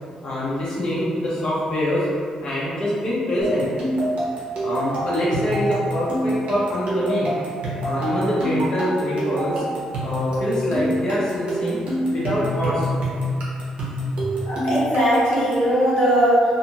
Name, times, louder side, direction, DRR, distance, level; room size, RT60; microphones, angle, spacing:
voice 1, 0.2-2.1 2.4-3.7 4.6-7.3 7.8-9.6 10.0-11.8 12.1-12.9, left 1 dB, 35° left, -8 dB, 0.7 m, -24 dB
sound 1, 3.4-15.7, right 1 dB, 60° right, 0.8 m, -26 dB
voice 2, 14.4-16.4, equal, 70° left, -9 dB, 1.3 m, -19 dB
2.5 x 2.5 x 2.8 m, 2.1 s
cardioid pair, 170°, 2 cm